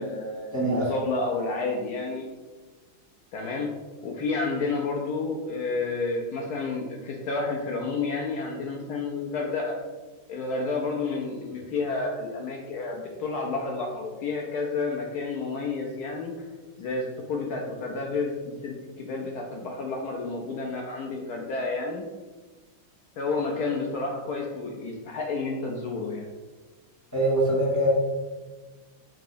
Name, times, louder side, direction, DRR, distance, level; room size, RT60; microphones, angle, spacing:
voice 1, 0.0-2.2 3.3-3.7 4.0-9.8 10.3-16.5 16.8-22.0 23.2-26.3, left 3 dB, 80° left, 0 dB, 0.8 m, -30 dB
voice 2, 0.5-0.9 27.1-27.9, right 1 dB, 15° left, -6 dB, 0.6 m, -23 dB
4.7 x 2.8 x 3.9 m, 1.3 s
omnidirectional pair, 2.2 m